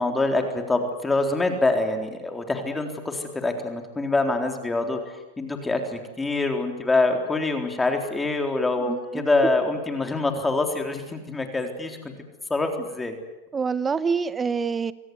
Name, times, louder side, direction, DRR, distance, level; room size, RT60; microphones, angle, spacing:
voice 1, 0.0-5.0 5.4-12.0 12.5-13.1, left 2 dB, 10° left, 5 dB, 3.8 m, -25 dB
voice 2, 8.8-9.2 13.5-14.9, right 5 dB, 20° right, 16 dB, 1.1 m, -26 dB
26.5 x 17.5 x 9.6 m, 1.1 s
hypercardioid pair, 115°, 0 cm